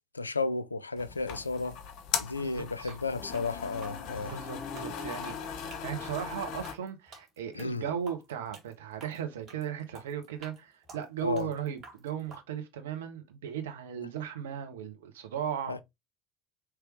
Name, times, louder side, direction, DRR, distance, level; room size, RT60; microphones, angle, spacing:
voice 1, 0.1-1.8 2.2-4.3 7.5-7.9 11.2-11.5 15.6-15.8, left 3 dB, 90° left, 0.3 m, -33 dB
sound 1, 1.0-6.7, left 7 dB, 55° left, 0.9 m, -38 dB
voice 2, 2.4-2.9 4.3-15.8, right 8 dB, 75° right, 0.9 m, -37 dB
sound 2, 2.8-12.4, right 3 dB, 40° right, 2.1 m, -51 dB
4.9 x 3.2 x 3.0 m
figure-of-eight pair, 60°, 0 cm